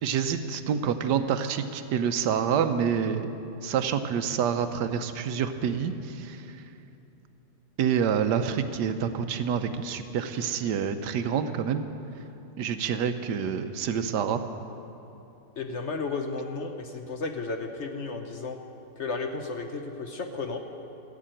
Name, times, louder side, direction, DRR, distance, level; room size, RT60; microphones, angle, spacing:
voice 1, 0.0-3.3 3.6-6.4 7.8-11.8 12.6-14.4, right 7 dB, 85° right, 9 dB, 1.4 m, -27 dB
voice 2, 15.6-18.6 19.0-20.6, left 3 dB, 50° left, 5 dB, 1.0 m, -33 dB
15.5 x 7.5 x 8.9 m, 2.9 s
omnidirectional pair, 1.8 m